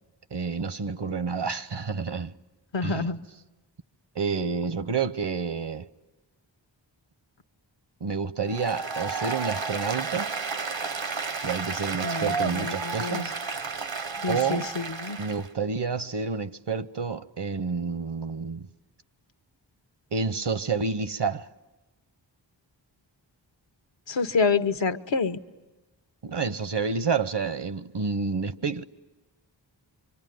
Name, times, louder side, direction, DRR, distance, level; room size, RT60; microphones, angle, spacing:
voice 1, 0.3-2.3 2.8-3.1 4.1-5.9 8.0-10.3 11.4-13.3 14.3-14.7 15.2-18.7 20.1-21.5 26.2-28.8, right 5 dB, 65° right, 0.9 m, -29 dB
voice 2, 2.7-3.2 12.0-13.3 14.2-15.2 24.1-25.4, left 4 dB, 75° left, 1.1 m, -27 dB
Applause, 8.5-15.5, right 4 dB, 80° right, 1.3 m, -32 dB
25.0 x 24.5 x 9.3 m
wide cardioid pair, 50°, 45 cm